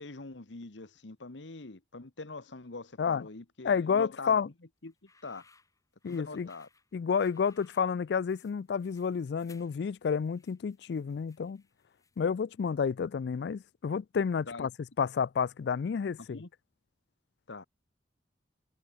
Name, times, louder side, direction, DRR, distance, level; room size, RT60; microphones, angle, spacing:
voice 1, 0.0-4.5 4.8-4.9 5.2-5.4 6.1-6.7 14.5-14.7 16.2-16.5 17.5-17.7, left 3 dB, 85° left, 1.3 m, -44 dB
voice 2, 3.6-4.5 6.0-6.5 6.9-11.6 12.2-14.7 15.0-16.4, left 6 dB, 65° left, 0.3 m, -30 dB
sound 1, 4.9-12.4, left 4 dB, 20° left, 6.7 m, -64 dB
head